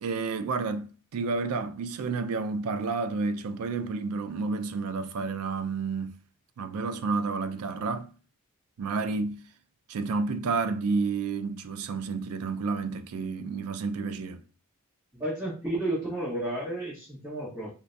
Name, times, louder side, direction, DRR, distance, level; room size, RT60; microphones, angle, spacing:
voice 1, 0.0-6.2 6.6-8.1 8.8-9.4 9.9-14.4, right 4 dB, 85° right, 0.4 m, -30 dB
voice 2, 15.1-17.7, right 1 dB, 15° right, 1.4 m, -32 dB
3.8 x 2.2 x 2.6 m
head